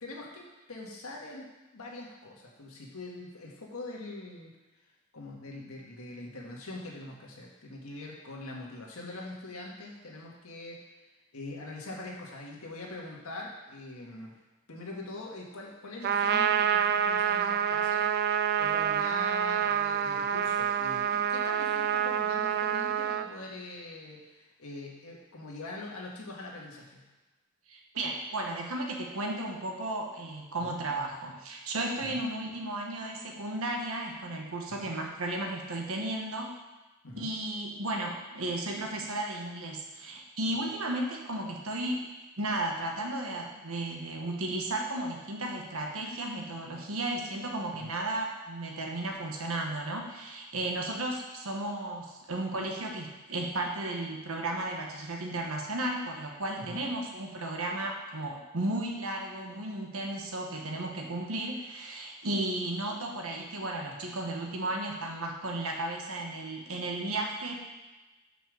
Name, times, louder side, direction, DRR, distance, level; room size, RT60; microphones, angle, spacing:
voice 1, 0.0-4.5 5.1-10.8 11.3-14.4 14.7-27.0 30.6-30.8 32.0-32.2 34.7-34.9 37.0-37.3 47.8-47.9 56.6-56.8, left 2 dB, 80° left, -2 dB, 1.7 m, -43 dB
Trumpet, 16.0-23.3, right 8 dB, 50° right, 0.3 m, -27 dB
voice 2, 27.7-36.6 37.1-42.1 42.4-67.6, right 1 dB, 75° right, 1 dB, 1.3 m, -34 dB
5.7 x 5.5 x 6.3 m, 1.1 s
head